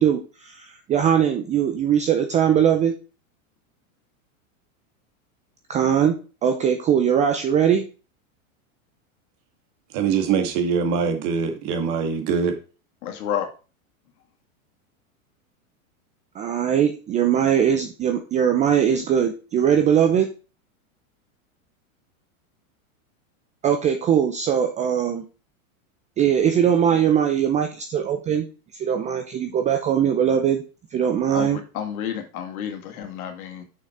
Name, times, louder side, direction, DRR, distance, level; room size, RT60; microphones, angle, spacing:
voice 1, 0.0-2.9 5.7-7.8 16.3-20.3 23.6-25.2 26.2-28.5 28.7-30.6 30.9-31.6, right 8 dB, 15° right, 0.5 m, -21 dB
voice 2, 9.9-12.6, right 6 dB, 45° right, 1.8 m, -23 dB
voice 3, 13.0-13.5 31.3-33.6, left 9 dB, 75° left, 2.0 m, -30 dB
6.5 x 5.6 x 4.2 m
supercardioid pair, 140°, 43 cm